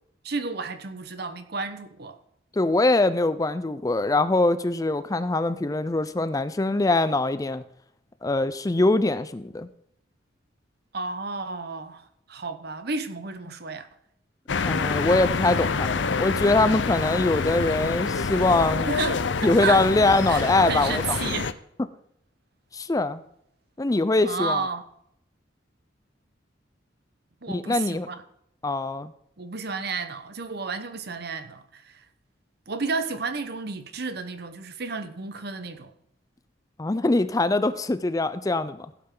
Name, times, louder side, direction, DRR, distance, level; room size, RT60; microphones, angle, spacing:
voice 1, 0.2-2.2 10.9-13.9 18.9-19.8 20.3-21.5 24.2-24.8 27.4-28.2 29.4-32.1 32.7-35.9, right 4 dB, 60° right, 1.0 m, -32 dB
voice 2, 2.6-7.6 8.2-9.7 14.6-19.0 19.4-21.2 22.7-23.2 23.8-24.6 27.5-28.1 28.6-29.1 36.8-38.9, left 2 dB, 20° left, 0.4 m, -23 dB
sound 1, 14.5-21.5, left 5 dB, 75° left, 0.6 m, -27 dB
16.0 x 8.7 x 3.8 m
head